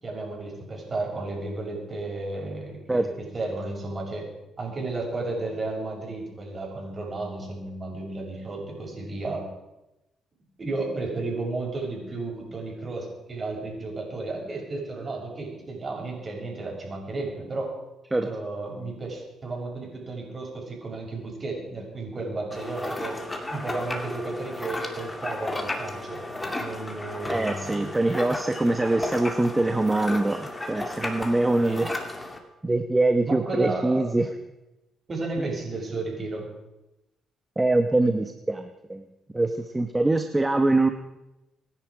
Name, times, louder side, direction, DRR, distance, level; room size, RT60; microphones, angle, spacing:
voice 1, 0.0-4.3 4.6-9.5 10.6-17.7 18.2-23.2 23.5-26.2 26.6-27.9 31.6-31.8 33.3-34.1 35.1-36.5, right 3 dB, 35° right, -1 dB, 6.6 m, -33 dB
sound 1, 22.5-32.4, left 2 dB, 15° left, 2.4 m, -34 dB
voice 2, 27.3-32.3 32.6-34.3 37.6-39.1 39.3-40.9, right 2 dB, 15° right, 7 dB, 1.1 m, -24 dB
26.0 x 10.5 x 4.9 m, 0.94 s
cardioid pair, 90°, 0 cm